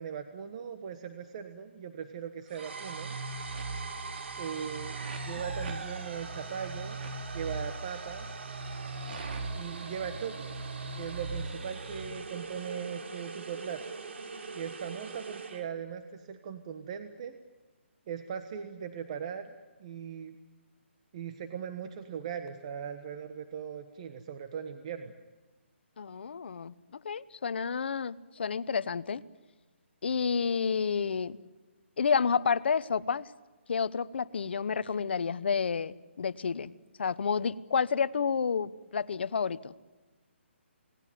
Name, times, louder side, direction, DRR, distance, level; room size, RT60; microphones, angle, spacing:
voice 1, 0.0-3.2 4.4-5.0 5.3-7.0 7.3-8.3 9.5-10.6 10.9-14.0 14.5-17.4 18.1-20.4 21.1-25.1, right 7 dB, 30° right, 8 dB, 1.3 m, -39 dB
sound 1, 2.5-12.1, right 3 dB, 50° right, 4.6 m, -40 dB
sound 2, 2.5-15.7, right 4 dB, 70° right, 3.1 m, -43 dB
voice 2, 26.0-29.2 30.0-31.4 32.0-33.3 33.7-36.7 37.0-39.7, left 6 dB, 60° left, 15 dB, 1.0 m, -30 dB
29.0 x 18.5 x 9.3 m, 1.2 s
hypercardioid pair, 165°, 7 cm